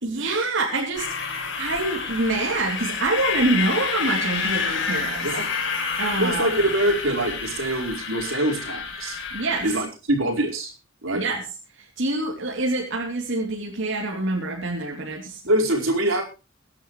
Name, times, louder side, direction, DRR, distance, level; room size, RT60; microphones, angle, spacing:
voice 1, 0.0-5.3 6.0-6.5 9.3-9.7 11.1-11.4 11.8-15.4, right 2 dB, 65° right, -1 dB, 3.3 m, -26 dB
sound 1, 0.9-9.8, left 5 dB, 65° left, 5.0 m, -29 dB
voice 2, 6.2-9.2 9.6-10.7 11.0-11.2 15.5-16.2, right 1 dB, 85° right, 1 dB, 4.6 m, -24 dB
23.0 x 11.0 x 3.2 m, 0.32 s
head